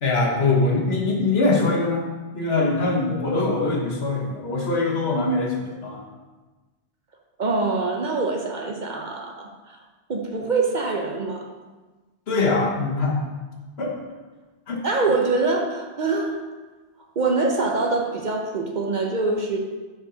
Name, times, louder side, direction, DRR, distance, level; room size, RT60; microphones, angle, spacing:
voice 1, 0.0-2.1 2.3-6.0 12.3-13.2 13.8-13.9 14.7-14.8, left 3 dB, 70° left, -1 dB, 1.3 m, -22 dB
voice 2, 7.4-9.8 10.1-11.5 14.8-16.4 17.2-19.6, right 3 dB, 50° right, 1 dB, 0.8 m, -24 dB
5.2 x 5.1 x 4.9 m, 1.2 s
omnidirectional pair, 1.1 m